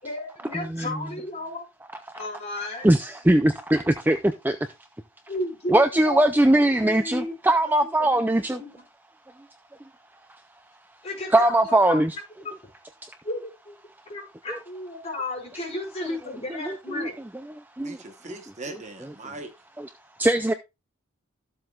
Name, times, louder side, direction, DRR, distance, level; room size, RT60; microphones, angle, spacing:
voice 1, 0.0-1.6 2.1-2.9 5.3-8.9 11.0-12.0 13.2-13.8 14.1-17.2, left 2 dB, 30° left, 4.8 m, -34 dB
voice 2, 2.8-4.2 4.4-4.6 5.7-8.6 11.3-12.1 16.9-17.1 17.8-18.0 20.2-20.5, right 1 dB, 10° right, 0.4 m, -20 dB
voice 3, 17.8-19.5, right 2 dB, 35° right, 1.1 m, -40 dB
14.0 x 7.7 x 2.4 m
head